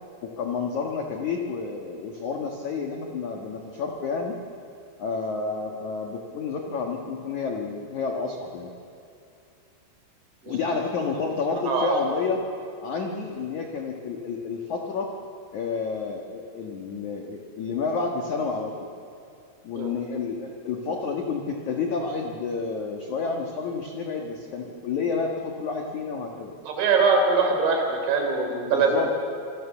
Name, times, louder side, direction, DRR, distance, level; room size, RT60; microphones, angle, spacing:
voice 1, 0.2-4.4 5.0-8.7 10.5-12.4 12.8-15.1 15.5-18.9 19.6-26.5 28.5-29.2, left 4 dB, 65° left, 2 dB, 1.9 m, -30 dB
voice 2, 11.7-12.0 19.8-19.9 26.7-28.9, right 4 dB, 65° right, 3 dB, 5.6 m, -22 dB
27.0 x 23.0 x 7.3 m, 2.6 s
omnidirectional pair, 5.8 m